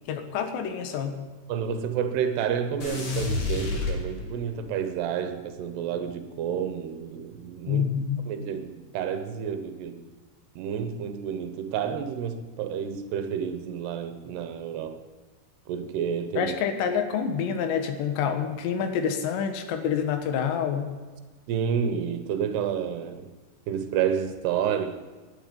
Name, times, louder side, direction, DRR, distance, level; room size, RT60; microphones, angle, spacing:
voice 1, 0.1-1.2 7.7-8.2 16.4-20.9, left 7 dB, 90° left, 3.6 m, -27 dB
voice 2, 1.5-7.9 8.3-10.0 10.6-15.0 15.7-16.5 21.5-23.3 23.7-25.0, right 8 dB, 75° right, 3.1 m, -30 dB
sound 1, 2.8-4.6, left 3 dB, 50° left, 3.6 m, -29 dB
19.5 x 11.5 x 5.4 m
omnidirectional pair, 4.9 m